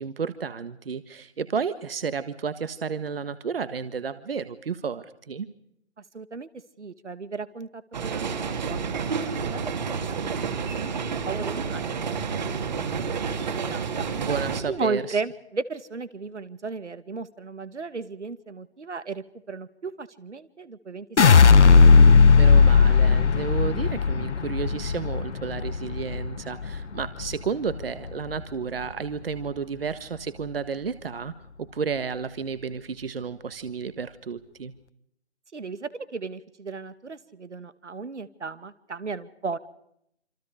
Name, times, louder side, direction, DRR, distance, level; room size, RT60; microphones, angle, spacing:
voice 1, 0.0-5.5 14.2-15.2 22.3-31.3 31.6-34.7, right 6 dB, 55° right, 12 dB, 1.7 m, -32 dB
voice 2, 6.1-6.5 6.8-13.2 13.6-14.1 14.7-21.1 21.5-22.0 35.5-39.6, right 4 dB, 80° right, 13 dB, 2.2 m, -35 dB
sound 1, 7.9-14.6, right 5 dB, 40° right, 2.9 m, -29 dB
sound 2, 21.2-27.3 27.7-28.3, left 5 dB, 75° left, 1.2 m, -17 dB
27.5 x 26.5 x 5.0 m, 0.75 s
figure-of-eight pair, 160°, 35 cm